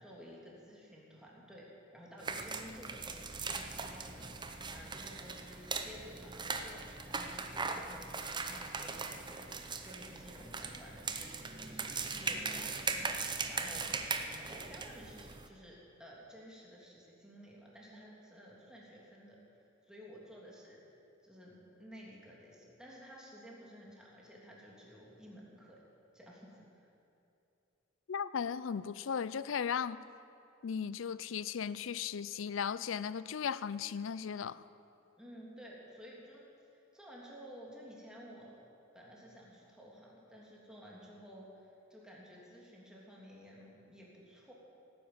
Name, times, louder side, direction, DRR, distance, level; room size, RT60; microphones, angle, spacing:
voice 1, 0.0-20.8 21.2-25.8 26.1-26.9 35.2-36.4 36.7-38.7 38.9-44.5, equal, 5° right, -4 dB, 3.1 m, -53 dB
sound 1, 2.2-15.5, right 4 dB, 25° right, 0.8 m, -39 dB
voice 2, 28.1-30.0 30.6-34.6, left 7 dB, 85° left, 17 dB, 0.5 m, -36 dB
17.0 x 9.9 x 7.9 m, 2.8 s
head